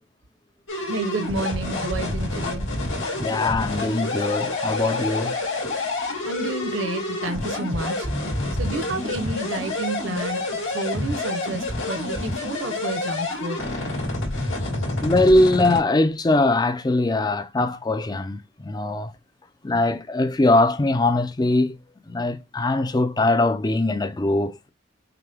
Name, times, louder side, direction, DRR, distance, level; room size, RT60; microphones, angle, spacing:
sound 1, 0.7-15.8, left 2 dB, 85° left, 2.2 m, -28 dB
voice 1, 0.9-2.7 6.2-8.1 8.6-13.6, right 2 dB, 70° right, 0.9 m, -30 dB
voice 2, 3.2-5.4 15.0-19.1 19.6-21.8 22.1-24.7, left 2 dB, 20° left, 0.4 m, -21 dB
5.9 x 2.2 x 3.4 m
head